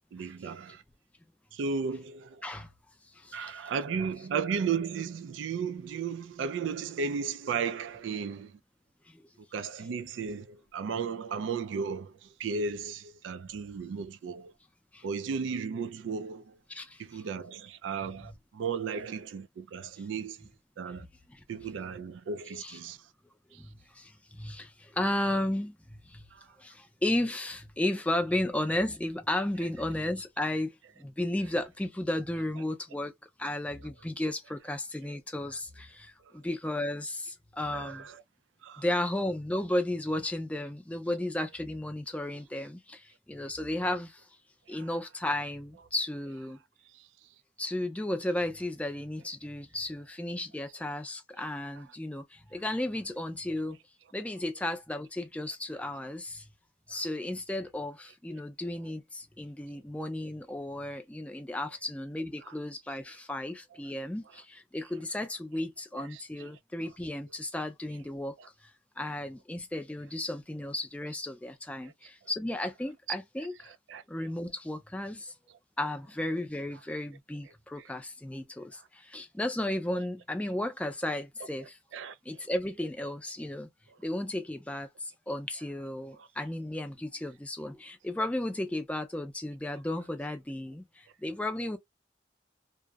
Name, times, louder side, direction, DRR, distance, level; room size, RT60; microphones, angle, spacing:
voice 1, 0.1-0.8 1.5-2.5 3.3-8.6 9.5-14.5 15.0-16.6 17.0-20.5 20.8-21.1 21.5-23.1 23.5-23.6 26.5-26.6 28.3-28.4 31.5-31.6 32.5-32.6 33.8-34.1 35.5-35.6 37.7-38.2 38.6-39.1 44.7-45.1 45.8-45.9 46.3-46.5 51.4-51.5 51.7-51.9 52.5-52.6 54.5-54.6 56.9-57.1 58.7-58.9 61.7-61.8 62.4-62.6 63.7-63.8 64.2-64.4 64.8-64.9 65.9-67.0 67.9-68.0 68.4-68.5 71.8-71.9 72.6-72.9 73.4-74.0 75.8-76.0 76.7-76.8 77.4-77.5 77.8-77.9 78.8-78.9 81.6-82.2 85.6-85.9 86.2-86.3 90.0-90.1, right 5 dB, 80° right, 0.3 m, -36 dB
voice 2, 16.7-17.2 18.2-18.3 21.0-21.4 22.6-22.8 23.5-26.2 26.6-33.1 33.4-38.1 38.8-44.3 44.7-46.6 47.6-53.8 54.1-56.5 56.9-68.7 69.0-73.7 74.1-75.3 75.8-81.8 82.3-83.7 84.0-91.8, left 1 dB, 5° left, 0.4 m, -34 dB
2.7 x 2.0 x 2.3 m
head